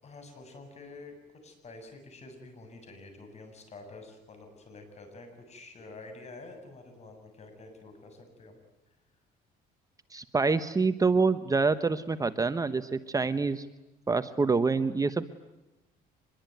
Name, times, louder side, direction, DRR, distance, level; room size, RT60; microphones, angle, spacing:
voice 1, 0.0-8.6, left 3 dB, 40° left, 6 dB, 7.8 m, -48 dB
voice 2, 10.1-13.7 14.1-15.2, right 4 dB, 20° right, 11 dB, 1.1 m, -26 dB
25.0 x 22.0 x 9.3 m, 0.99 s
cardioid pair, 110°, 17 cm